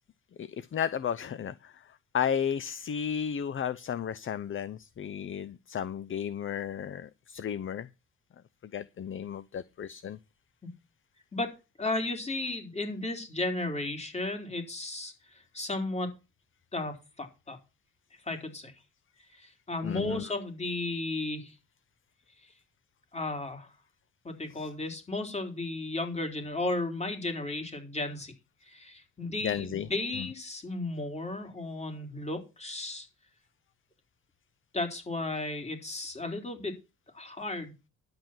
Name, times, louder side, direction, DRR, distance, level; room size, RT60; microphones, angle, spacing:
voice 1, 0.4-1.7 2.1-7.9 8.7-10.2 19.8-20.2 29.4-29.9 30.2-30.3, left 8 dB, 40° left, 0.7 m, -33 dB
voice 2, 11.3-16.1 16.7-17.6 18.3-18.7 19.3-21.6 23.1-23.7 24.2-28.3 28.6-33.1 34.7-36.7 37.1-37.8, left 2 dB, 20° left, 3.8 m, -34 dB
11.0 x 8.0 x 5.9 m
cardioid pair, 90°, 30 cm